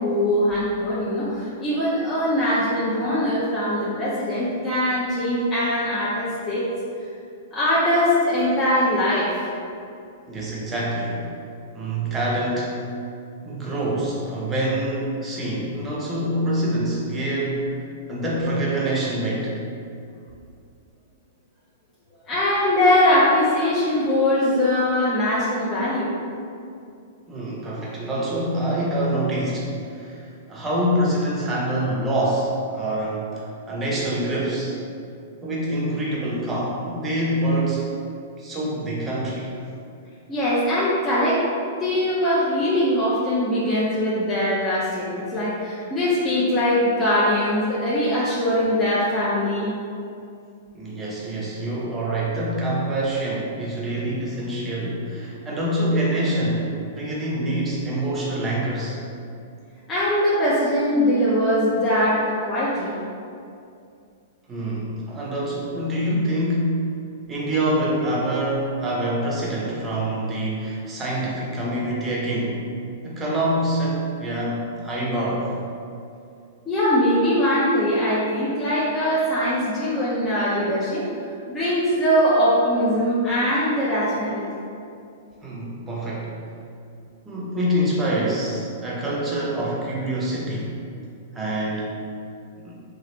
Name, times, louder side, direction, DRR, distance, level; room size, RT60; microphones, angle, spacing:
voice 1, 0.0-6.7 7.5-9.3 22.3-26.1 40.3-41.4 41.8-49.7 59.9-62.9 76.7-81.1 81.5-84.4, left 1 dB, 15° left, -11 dB, 0.6 m, -21 dB
voice 2, 10.3-11.2 11.7-12.8 13.4-17.7 18.1-19.6 27.3-34.8 35.4-37.9 38.4-39.5 50.7-59.0 64.5-66.8 67.3-72.6 73.0-75.5 85.4-86.3 87.2-90.8 91.3-92.0 92.6-92.7, right 1 dB, 20° right, -5 dB, 0.7 m, -25 dB
3.0 x 2.4 x 3.0 m, 2.5 s
hypercardioid pair, 135°, 0 cm